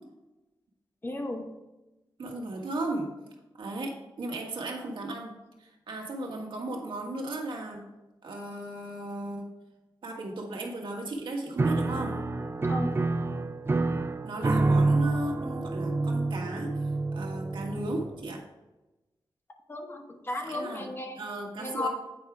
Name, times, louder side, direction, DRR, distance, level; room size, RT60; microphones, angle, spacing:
voice 1, 1.0-1.5 12.7-12.9 19.7-21.2 21.6-21.9, left 2 dB, 25° left, 4 dB, 1.0 m, -34 dB
voice 2, 2.2-3.1 3.6-5.3 5.6-7.9 8.2-9.5 10.0-12.2 14.2-18.4 20.4-20.9 21.2-21.9, right 2 dB, 80° right, 0 dB, 1.5 m, -36 dB
Piano, 11.6-18.4, right 3 dB, 30° right, 0.4 m, -28 dB
8.5 x 4.8 x 4.7 m, 1.0 s
wide cardioid pair, 110°, 8 cm